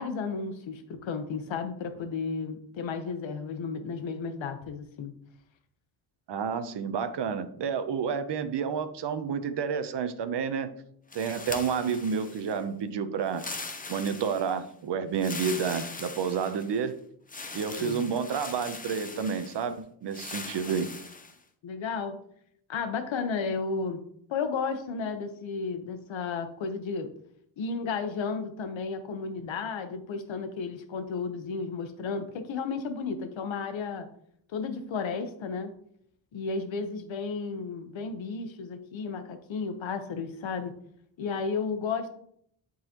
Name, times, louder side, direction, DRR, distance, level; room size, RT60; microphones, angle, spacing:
voice 1, 0.0-5.1 17.8-18.0 20.6-20.8 21.6-22.2 22.7-24.0 24.3-27.1 27.6-34.1 34.5-35.7 36.3-40.7 41.2-42.1, left 5 dB, 75° left, 8 dB, 1.0 m, -33 dB
voice 2, 6.3-10.7 11.1-13.4 13.9-16.9 17.5-20.9, right 6 dB, 60° right, 11 dB, 0.8 m, -30 dB
sound 1, 11.1-12.6 13.3-14.6 15.1-16.8 17.3-19.7 20.1-21.4, left 3 dB, 20° left, 0.7 m, -41 dB
10.5 x 4.0 x 2.9 m, 0.67 s
cardioid pair, 105°, 46 cm